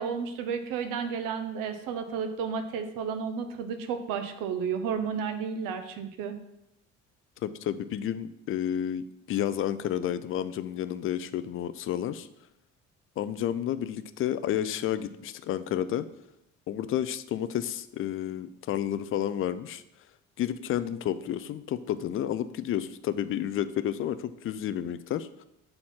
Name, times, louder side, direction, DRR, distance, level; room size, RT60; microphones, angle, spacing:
voice 1, 0.0-6.4, right 6 dB, 55° right, 8 dB, 0.9 m, -32 dB
voice 2, 7.4-12.3 13.2-16.1 16.7-19.8 20.4-25.4, left 10 dB, 35° left, 13 dB, 0.4 m, -31 dB
7.8 x 4.2 x 4.3 m, 0.83 s
figure-of-eight pair, 50°, 39 cm